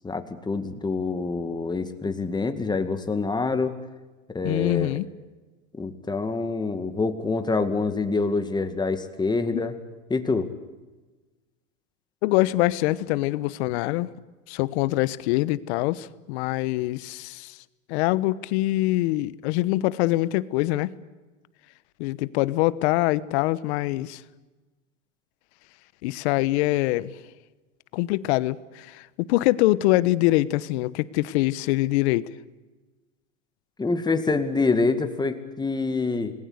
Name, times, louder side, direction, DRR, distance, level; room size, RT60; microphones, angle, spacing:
voice 1, 0.0-3.8 4.3-5.0 5.7-9.8 10.1-10.5 33.8-36.3, left 3 dB, 10° left, 8 dB, 2.1 m, -26 dB
voice 2, 4.4-5.1 9.5-9.7 12.2-14.1 14.5-17.6 17.9-20.9 22.0-24.2 26.0-27.1 27.9-32.3, left 18 dB, 55° left, 17 dB, 1.1 m, -24 dB
27.0 x 20.5 x 8.1 m, 1.2 s
hypercardioid pair, 110°, 39 cm